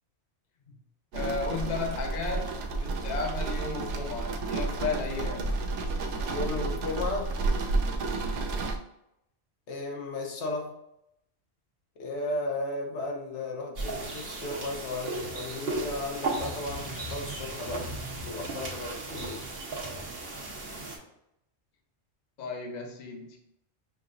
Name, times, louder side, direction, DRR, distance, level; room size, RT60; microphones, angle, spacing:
voice 1, 1.1-5.6 22.4-23.4, left 4 dB, 45° left, 2 dB, 0.8 m, -34 dB
sound 1, 1.1-8.8, right 3 dB, 85° right, 0.9 m, -31 dB
voice 2, 6.3-7.3 9.7-10.8 12.0-17.9 18.3-19.4, left 2 dB, 85° left, 1 dB, 1.2 m, -35 dB
sound 2, 13.8-21.0, right 2 dB, 60° right, 1.2 m, -35 dB
6.0 x 2.9 x 2.5 m, 0.82 s
omnidirectional pair, 1.2 m